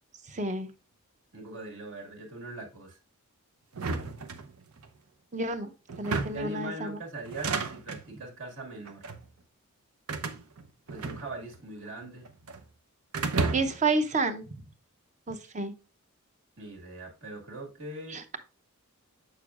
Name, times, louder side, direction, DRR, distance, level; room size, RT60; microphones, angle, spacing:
voice 1, 0.3-0.7 5.3-5.7 6.0-7.0 13.5-14.5 15.3-15.7 18.1-18.4, right 3 dB, 35° right, 0.7 m, -30 dB
voice 2, 1.3-3.0 6.3-9.1 10.9-12.3 16.6-18.2, right 2 dB, 60° right, 1.9 m, -41 dB
Opening fridge door grabbing stuff closing fridge., 3.7-4.9 5.9-6.6 7.2-8.1 8.9-9.3 10.1-11.6 11.9-12.6 13.1-13.9, right 4 dB, 80° right, 0.8 m, -33 dB
7.0 x 6.5 x 2.4 m
head